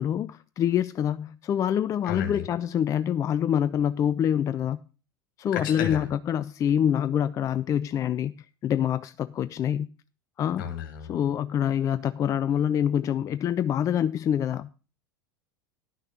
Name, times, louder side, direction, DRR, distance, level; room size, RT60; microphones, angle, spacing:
voice 1, 0.0-4.8 5.4-8.4 8.6-9.9 10.4-10.7 11.1-14.7, left 9 dB, 25° left, 0.4 m, -26 dB
voice 2, 2.1-2.4 5.5-6.1 10.6-11.1, left 9 dB, 60° left, 2.3 m, -32 dB
10.5 x 6.4 x 5.8 m
figure-of-eight pair, 80°, 12 cm